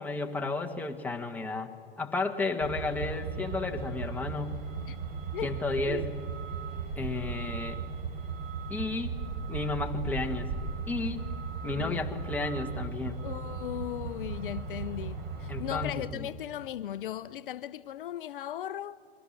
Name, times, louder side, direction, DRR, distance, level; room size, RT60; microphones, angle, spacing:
voice 1, 0.0-1.7 2.0-4.6 5.4-6.1 7.0-7.8 8.7-9.2 9.5-10.5 10.9-11.3 11.6-13.2 15.5-16.3, left 3 dB, 5° left, 1.6 m, -32 dB
Truck, 2.6-16.0, right 5 dB, 35° right, 4.0 m, -37 dB
voice 2, 11.7-12.1 13.2-19.0, left 12 dB, 65° left, 0.6 m, -37 dB
28.0 x 22.5 x 6.0 m
hypercardioid pair, 115°, 29 cm